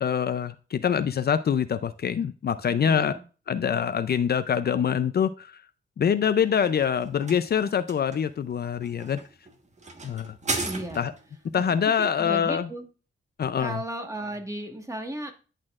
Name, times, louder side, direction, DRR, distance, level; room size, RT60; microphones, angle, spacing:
voice 1, 0.0-3.2 3.5-5.6 6.0-9.2 10.0-10.3 11.0-11.1 11.5-12.7 13.4-13.8, left 8 dB, 55° left, 12 dB, 0.5 m, -25 dB
voice 2, 2.7-3.2 10.6-11.0 11.5-12.8 13.6-15.3, right 1 dB, 15° right, 4 dB, 1.5 m, -35 dB
sound 1, 6.2-11.3, right 3 dB, 35° right, 1.3 m, -36 dB
10.5 x 4.3 x 2.4 m, 0.35 s
cardioid pair, 80°, 20 cm